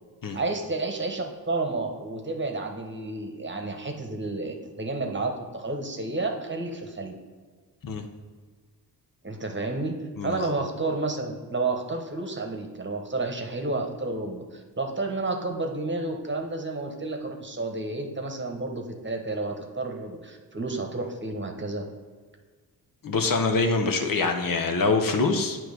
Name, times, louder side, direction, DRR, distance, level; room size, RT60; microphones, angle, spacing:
voice 1, 0.3-7.1 9.2-10.0 10.2-21.9, right 2 dB, 30° right, 3 dB, 1.2 m, -31 dB
voice 2, 23.0-25.6, left 3 dB, 55° left, 4 dB, 0.9 m, -24 dB
8.7 x 3.1 x 6.5 m, 1.5 s
cardioid pair, 70°, 40 cm